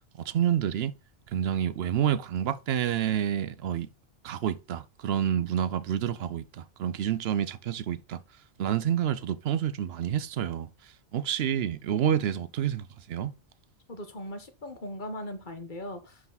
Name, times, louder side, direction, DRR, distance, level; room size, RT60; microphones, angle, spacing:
voice 1, 0.2-0.9 1.3-3.9 4.2-8.2 8.6-13.3, right 9 dB, 75° right, 0.8 m, -28 dB
voice 2, 13.9-16.3, left 1 dB, 50° left, 1.4 m, -39 dB
11.0 x 4.7 x 4.0 m
omnidirectional pair, 1.1 m